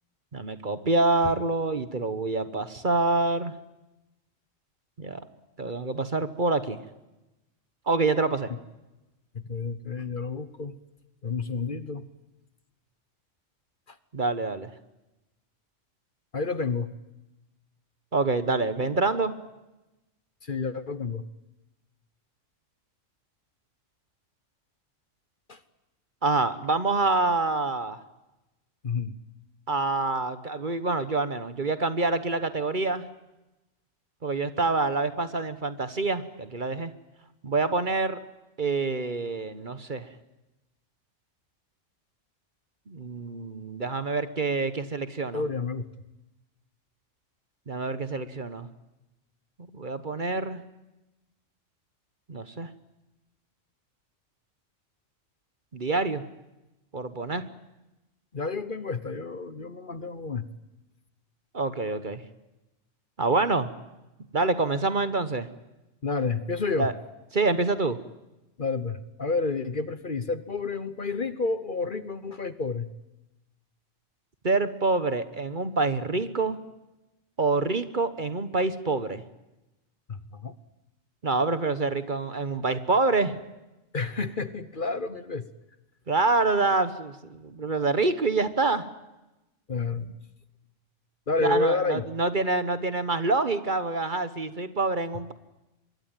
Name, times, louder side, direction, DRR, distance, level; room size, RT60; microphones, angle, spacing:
voice 1, 0.3-3.5 5.0-5.2 5.6-6.8 7.9-8.5 14.1-14.7 18.1-19.3 26.2-28.0 29.7-33.1 34.2-36.9 37.4-38.2 38.6-40.1 42.9-45.4 47.7-48.7 49.7-50.6 52.3-52.7 55.7-56.2 56.9-57.4 61.5-62.2 63.2-63.7 64.3-65.5 66.8-66.9 67.3-68.0 74.4-76.6 77.4-79.2 81.2-83.4 86.1-88.9 91.4-95.3, right 3 dB, 40° right, 12 dB, 1.3 m, -26 dB
voice 2, 9.3-10.7 11.2-12.1 13.9-14.0 16.3-16.9 20.4-21.2 25.5-25.6 28.8-29.1 45.3-45.9 58.3-60.5 66.0-66.9 68.6-72.9 80.1-80.5 83.9-85.5 89.7-90.1 91.3-92.0, left 4 dB, 45° left, 14 dB, 1.2 m, -30 dB
25.5 x 22.5 x 9.1 m, 0.99 s
omnidirectional pair, 1.3 m